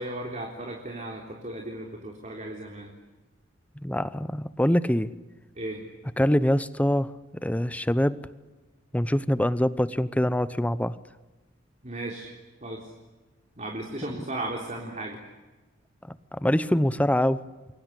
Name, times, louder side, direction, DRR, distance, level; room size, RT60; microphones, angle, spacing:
voice 1, 0.0-3.0 5.6-5.8 11.8-12.3 12.6-12.9 13.6-15.2, right 1 dB, 40° right, 1 dB, 3.6 m, -35 dB
voice 2, 3.8-5.1 6.2-7.1 7.4-8.2 8.9-10.9 16.1-17.4, equal, 10° left, 15 dB, 0.8 m, -24 dB
28.5 x 23.0 x 8.3 m, 1.2 s
head